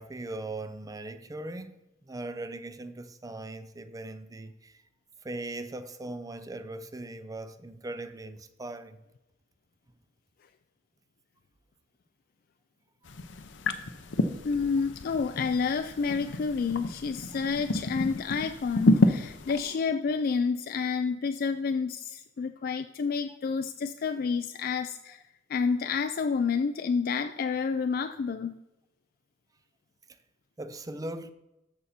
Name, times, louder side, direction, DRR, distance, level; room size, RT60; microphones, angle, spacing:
voice 1, 0.0-4.8 5.2-9.0 13.0-13.1 30.6-31.3, right 2 dB, 20° right, 0.5 m, -39 dB
sound 1, 13.0-19.6, left 2 dB, 90° left, 0.7 m, -29 dB
voice 2, 14.4-25.2 25.5-28.6, left 5 dB, 55° left, 0.4 m, -29 dB
13.5 x 5.6 x 4.2 m
head